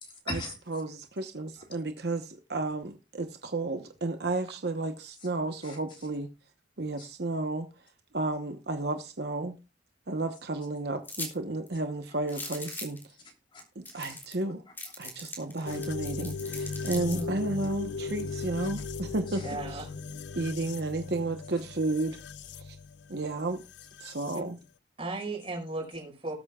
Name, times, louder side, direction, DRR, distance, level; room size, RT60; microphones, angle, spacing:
voice 1, 0.0-0.8 1.5-1.7 5.2-5.3 5.6-6.1 7.0-7.1 12.1-12.8 13.1-14.3 14.7-14.9 15.7-15.8 17.6-17.7 18.3-18.4 18.8-18.9 19.3-19.5 25.9-26.0, left 2 dB, 30° left, 3.3 m, -44 dB
voice 2, 0.7-6.3 6.8-7.7 8.1-9.5 10.1-13.0 13.8-14.6 15.0-19.4 19.7-19.8 20.3-22.2 22.5-22.8 23.1-23.6 24.0-24.6, right 2 dB, 60° right, 1.0 m, -32 dB
sound 1, 11.0-11.3 11.7-11.8 12.3-13.0 13.6-13.7 13.8-14.4 14.8-17.2, left 2 dB, 10° left, 3.4 m, -40 dB
sound 2, 15.7-24.4, left 4 dB, 70° left, 0.5 m, -38 dB
voice 3, 16.9-17.3 19.4-20.0 24.3-24.4 25.0-26.3, right 2 dB, 30° right, 5.2 m, -36 dB
20.0 x 8.5 x 2.3 m
head